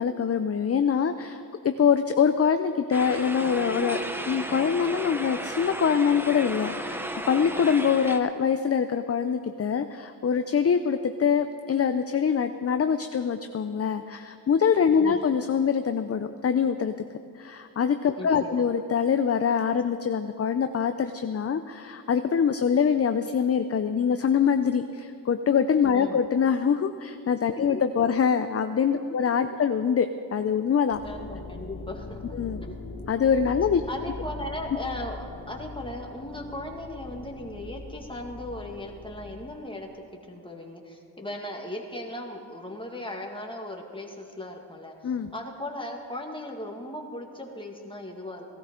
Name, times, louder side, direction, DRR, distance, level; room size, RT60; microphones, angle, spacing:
voice 1, 0.0-4.0 4.3-7.0 7.3-16.9 17.4-31.0 32.3-32.6 33.1-33.8 45.0-45.3, left 7 dB, 35° left, 9 dB, 0.5 m, -24 dB
sound 1, 2.9-8.2, equal, 5° right, 0.8 m, -34 dB
voice 2, 18.2-18.7 25.9-26.2 27.7-27.8 29.0-29.2 31.0-32.2 32.6-32.8 33.9-48.5, left 1 dB, 10° left, 1 dB, 1.9 m, -37 dB
sound 2, 30.9-39.6, left 3 dB, 80° left, 2.0 m, -41 dB
17.5 x 13.5 x 3.8 m, 2.4 s
cardioid pair, 60°, 40 cm